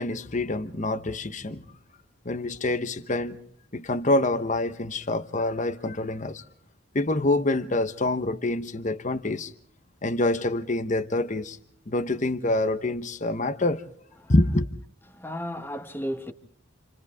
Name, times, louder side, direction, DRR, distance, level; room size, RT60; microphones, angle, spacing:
voice 1, 0.0-1.6 2.2-3.4 3.7-6.4 6.9-9.5 10.0-11.6 11.9-13.8 14.3-14.7, left 2 dB, 40° left, 1.1 m, -26 dB
voice 2, 15.1-16.3, equal, 10° left, 1.6 m, -34 dB
30.0 x 28.0 x 3.6 m
head